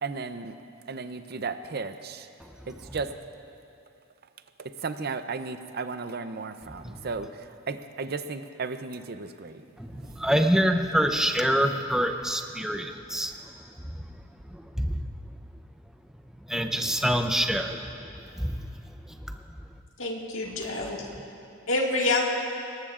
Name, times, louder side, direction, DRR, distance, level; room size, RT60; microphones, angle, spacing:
voice 1, 0.0-0.6 0.9-2.3 2.7-3.1 4.6-9.6 10.0-10.3, right 4 dB, 45° right, 10 dB, 0.6 m, -35 dB
voice 2, 9.8-13.3 14.8-15.0 16.5-18.6, equal, ahead, 5 dB, 0.6 m, -26 dB
voice 3, 20.0-21.0 21.7-22.3, left 2 dB, 65° left, -2 dB, 1.9 m, -27 dB
21.0 x 19.0 x 2.5 m, 2.6 s
head